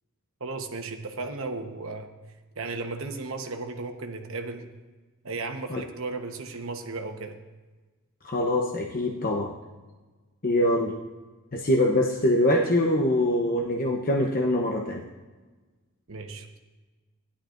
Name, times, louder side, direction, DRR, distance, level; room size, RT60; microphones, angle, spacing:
voice 1, 0.4-2.1 2.6-4.7 5.2-7.3 16.1-16.6, right 3 dB, 65° right, 5 dB, 1.1 m, -35 dB
voice 2, 8.2-9.5 10.4-10.9 11.5-15.0, left 1 dB, 40° left, 1 dB, 0.8 m, -24 dB
16.0 x 11.0 x 2.5 m, 1.3 s
head